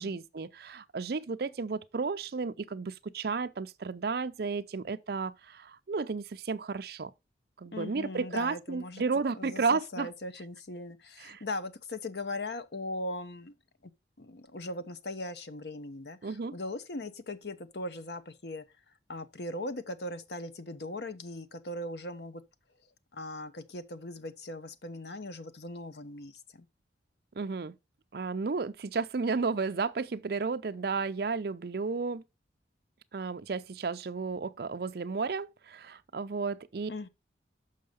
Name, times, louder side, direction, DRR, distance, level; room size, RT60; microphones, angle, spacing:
voice 1, 0.0-7.1 7.6-10.1 11.2-11.4 16.2-16.5 27.4-27.7 28.1-32.2 33.1-36.9, right 4 dB, 60° right, 0.5 m, -33 dB
voice 2, 7.7-9.0 9.3-13.5 13.8-13.9 14.2-18.6 19.1-22.4 23.1-26.7 36.9-37.1, left 2 dB, 65° left, 0.9 m, -39 dB
6.6 x 5.5 x 5.1 m
head